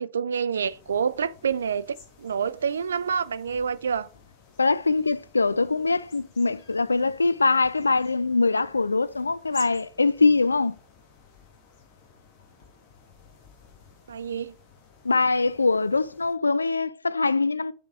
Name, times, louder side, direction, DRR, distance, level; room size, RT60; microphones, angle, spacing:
voice 1, 0.0-4.1 14.1-14.5, right 7 dB, 70° right, 0.3 m, -28 dB
sound 1, 0.6-16.3, left 5 dB, 45° left, 1.4 m, -52 dB
voice 2, 4.6-10.7 15.0-17.7, left 3 dB, 80° left, 0.3 m, -23 dB
7.0 x 3.6 x 4.8 m
figure-of-eight pair, 90°, 0 cm